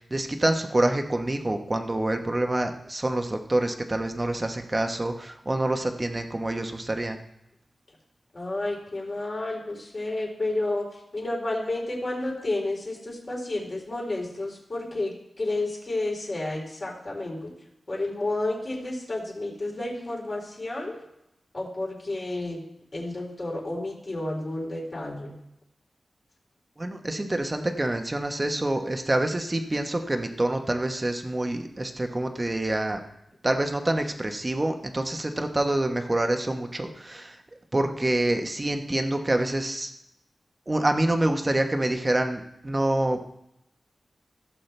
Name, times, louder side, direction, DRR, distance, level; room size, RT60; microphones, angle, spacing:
voice 1, 0.0-7.2 26.8-33.0 33.4-37.4 37.7-39.9 40.7-43.3, right 1 dB, 25° right, 5 dB, 1.2 m, -26 dB
voice 2, 8.3-17.5 17.9-21.0 21.5-22.6 22.9-25.4, left 2 dB, 40° left, -3 dB, 4.0 m, -31 dB
16.0 x 7.6 x 3.4 m, 0.82 s
wide cardioid pair, 90°, 0 cm